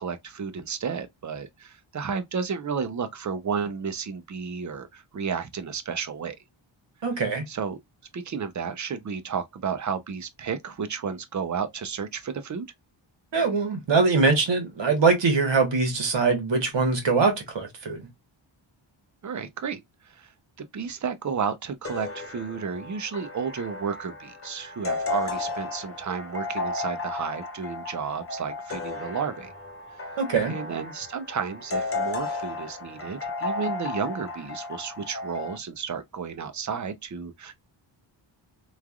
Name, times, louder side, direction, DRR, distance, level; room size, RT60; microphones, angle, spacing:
voice 1, 0.0-6.4 7.5-7.8 8.1-12.7 19.2-20.3 20.6-29.5 30.4-37.6, right 6 dB, 40° right, 0.5 m, -32 dB
voice 2, 7.0-7.5 13.3-18.1 30.2-30.6, right 4 dB, 65° right, 1.2 m, -23 dB
sound 1, 21.8-35.6, left 3 dB, 30° left, 0.7 m, -34 dB
3.1 x 2.4 x 2.3 m
wide cardioid pair, 105°, 48 cm